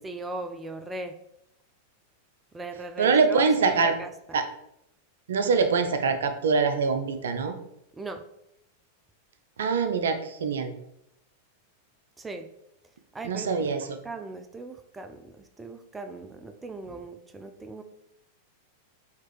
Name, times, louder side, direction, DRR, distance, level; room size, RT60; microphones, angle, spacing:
voice 1, 0.0-1.2 2.5-4.4 8.0-8.2 12.2-12.5 13.1-17.8, right 2 dB, 15° right, 7 dB, 0.4 m, -38 dB
voice 2, 3.0-3.9 4.3-4.4 5.3-7.6 9.6-10.7 13.2-14.0, right 5 dB, 75° right, 9 dB, 0.4 m, -24 dB
4.4 x 2.8 x 3.2 m, 0.78 s
hypercardioid pair, 95°, 0 cm